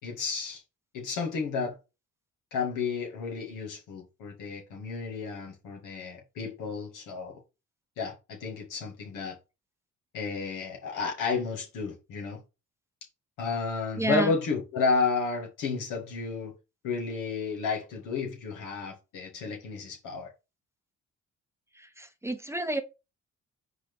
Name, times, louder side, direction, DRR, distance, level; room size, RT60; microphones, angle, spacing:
voice 1, 0.0-0.6 0.9-1.8 2.5-7.4 8.0-9.4 10.1-12.4 13.4-16.5 16.8-20.3, left 4 dB, 90° left, 2.2 m, -32 dB
voice 2, 14.0-14.3 21.8-22.8, right 2 dB, 10° right, 0.9 m, -30 dB
4.6 x 4.1 x 5.2 m
cardioid pair, 90°, 30 cm